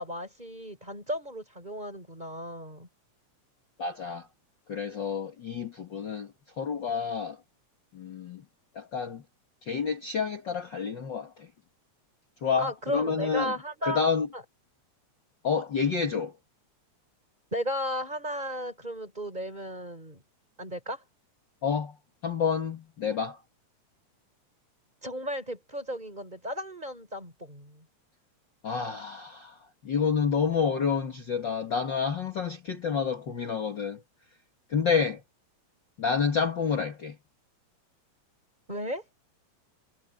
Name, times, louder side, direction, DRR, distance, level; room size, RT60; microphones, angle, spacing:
voice 1, 0.0-2.9 12.5-14.1 14.3-14.4 17.5-20.2 20.6-21.0 25.0-27.8 38.7-39.0, equal, 15° right, 4.9 m, -35 dB
voice 2, 3.8-4.3 4.7-7.4 7.9-8.4 8.7-9.2 9.6-11.5 12.4-13.6 13.8-14.3 15.4-16.3 21.6-22.0 22.2-23.4 28.6-34.0 34.7-35.2 36.0-37.2, left 6 dB, 40° left, 2.2 m, -29 dB
omnidirectional pair, 3.4 m